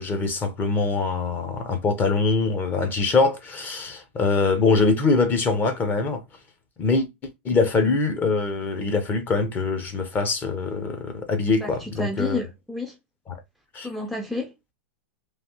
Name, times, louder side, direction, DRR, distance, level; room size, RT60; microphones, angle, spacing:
voice 1, 0.0-6.2 6.8-7.1 7.4-12.4 13.3-13.4 13.7-13.9, left 3 dB, 25° left, 0.9 m, -23 dB
voice 2, 11.6-12.9 13.8-14.7, left 3 dB, ahead, 0.5 m, -31 dB
3.3 x 2.6 x 2.8 m
hypercardioid pair, 115°, 7 cm